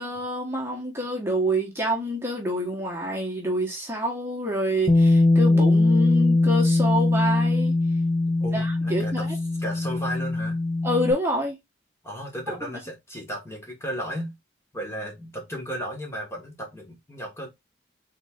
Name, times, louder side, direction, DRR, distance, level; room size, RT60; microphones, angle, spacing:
voice 1, 0.0-7.7 8.5-9.3 10.8-11.6 12.5-12.6, equal, 10° right, 1.1 m, -27 dB
Bass guitar, 4.9-11.1, left 2 dB, 30° left, 0.6 m, -21 dB
voice 2, 8.3-10.6 12.0-14.3 14.7-17.5, equal, 15° left, 1.3 m, -35 dB
3.7 x 3.6 x 3.5 m
head